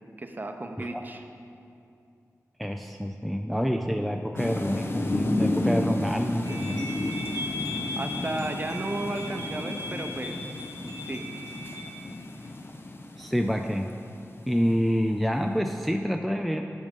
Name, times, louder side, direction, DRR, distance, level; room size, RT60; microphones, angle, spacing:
voice 1, 0.2-1.2 8.0-10.4 11.1-11.2, right 2 dB, 30° right, 5 dB, 0.7 m, -33 dB
voice 2, 2.6-6.8 13.2-13.9 14.5-16.6, equal, ahead, 4 dB, 0.3 m, -27 dB
sound 1, 4.4-14.5, left 2 dB, 40° left, 0.6 m, -32 dB
sound 2, 6.4-12.0, left 2 dB, 65° left, 1.2 m, -38 dB
12.0 x 6.4 x 3.7 m, 2.5 s
wide cardioid pair, 100°, 6 cm